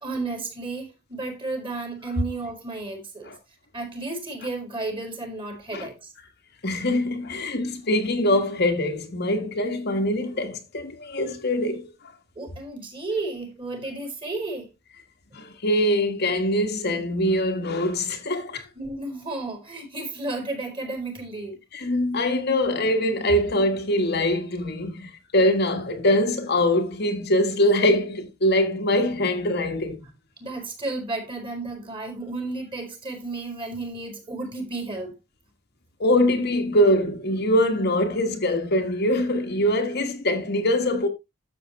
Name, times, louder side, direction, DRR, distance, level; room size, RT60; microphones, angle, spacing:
voice 1, 0.0-3.3 3.7-6.1 12.4-14.7 18.7-21.6 30.4-35.1, right 2 dB, 25° right, 4.2 m, -32 dB
voice 2, 6.6-11.9 15.3-18.6 21.7-30.0 36.0-41.1, left 1 dB, 50° left, 1.5 m, -23 dB
12.5 x 7.5 x 3.2 m
head